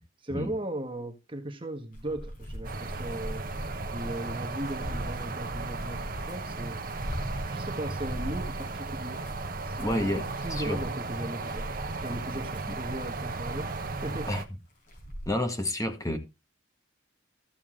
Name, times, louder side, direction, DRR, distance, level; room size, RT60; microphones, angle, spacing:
voice 1, 0.2-3.4 3.9-6.8 7.5-9.2 9.6-14.4, right 1 dB, 25° right, 1.4 m, -37 dB
sound 1, 1.9-15.3, equal, 40° left, 5.1 m, -41 dB
sound 2, 2.6-14.5, right 3 dB, 45° right, 1.1 m, -35 dB
voice 2, 9.8-10.2 10.5-10.8 12.7-12.8 14.3-14.4 15.2-16.2, left 1 dB, 15° left, 1.7 m, -29 dB
14.5 x 7.0 x 3.7 m
head